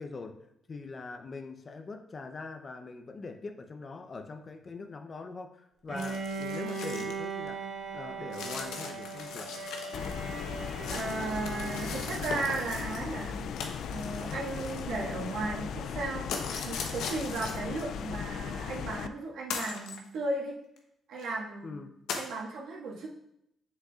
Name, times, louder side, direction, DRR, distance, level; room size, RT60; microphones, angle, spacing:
voice 1, 0.0-7.6 7.9-9.5 21.6-21.9, left 3 dB, 35° left, 8 dB, 0.6 m, -42 dB
Bowed string instrument, 5.9-12.6, right 4 dB, 55° right, 1.1 m, -39 dB
sound 1, 6.0-7.2 7.5-7.6 8.3-10.1 10.4-13.0 13.6-15.3 16.3-17.8 18.7-18.8 19.5-20.0 20.8-20.9 21.2-21.3 22.1-22.3, left 5 dB, 90° left, 0.8 m, -39 dB
sound 2, 9.9-19.1, left 8 dB, 70° left, 0.3 m, -37 dB
voice 2, 10.9-13.5 13.9-20.6 21.1-21.8 22.1-23.1, right 3 dB, 80° right, -4 dB, 1.7 m, -35 dB
7.4 x 6.5 x 2.4 m, 0.80 s
cardioid pair, 90°, 0 cm